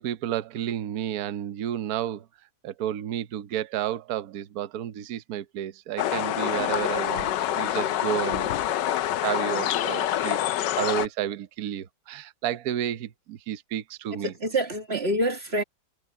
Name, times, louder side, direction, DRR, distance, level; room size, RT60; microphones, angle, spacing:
voice 1, 0.0-2.3 2.6-8.6 9.2-14.3, right 11 dB, 55° right, 1.2 m, -31 dB
sound 1, 6.0-11.1, left 12 dB, 70° left, 1.2 m, -26 dB
voice 2, 14.1-15.6, right 1 dB, 30° right, 2.3 m, -27 dB
omnidirectional pair, 2.2 m